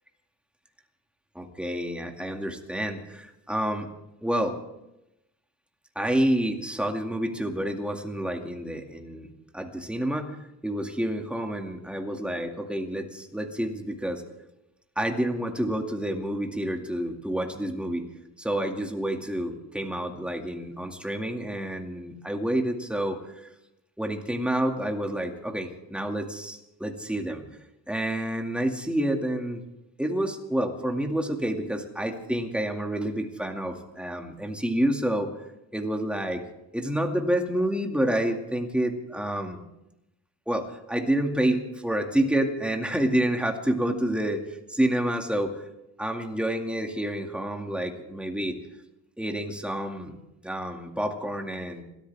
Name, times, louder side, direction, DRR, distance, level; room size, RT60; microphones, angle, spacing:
voice 1, 1.4-3.9 4.2-4.5 6.0-9.3 9.5-10.3 10.6-14.2 15.0-18.1 18.4-23.5 24.0-27.4 27.9-29.6 30.0-35.3 35.7-36.4 36.7-39.6 40.5-44.4 44.7-45.5 46.0-48.6 49.2-50.2 50.4-51.8, right 1 dB, 5° right, 3 dB, 2.2 m, -28 dB
29.0 x 13.5 x 3.6 m, 0.89 s
cardioid pair, 110°, 38 cm